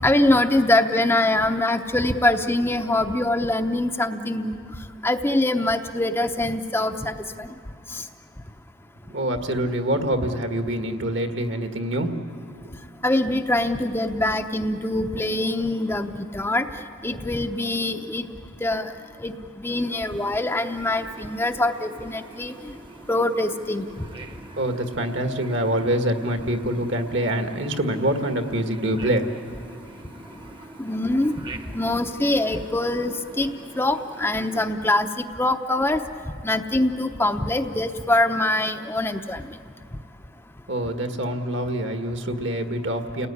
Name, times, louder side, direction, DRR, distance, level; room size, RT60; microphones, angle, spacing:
voice 1, 0.0-4.6 5.0-7.5 7.9-8.0 13.0-16.7 17.0-18.3 18.6-18.9 19.2-22.5 23.1-23.8 30.8-31.3 31.7-33.5 33.8-35.1 35.4-36.0 36.4-39.4, left 1 dB, 10° left, 6 dB, 0.7 m, -23 dB
voice 2, 9.1-12.1 12.4-12.6 24.6-29.3 40.7-43.3, right 1 dB, 60° right, 5 dB, 1.8 m, -25 dB
sound 1, 19.8-34.7, right 2 dB, 25° right, 1.0 m, -44 dB
29.5 x 19.0 x 9.8 m, 2.4 s
head